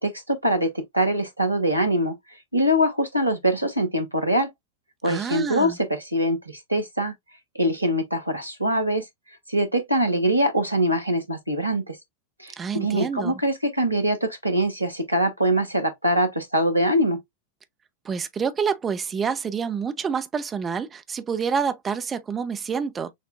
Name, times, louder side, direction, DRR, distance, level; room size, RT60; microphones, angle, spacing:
voice 1, 0.0-2.2 2.5-4.5 5.0-7.1 7.5-9.0 9.5-12.0 12.4-17.2, equal, 85° right, 0.9 m, -23 dB
voice 2, 5.0-5.8 12.6-13.4 18.0-23.1, right 6 dB, 20° right, 0.6 m, -28 dB
6.3 x 2.2 x 2.4 m
figure-of-eight pair, 90°, 0 cm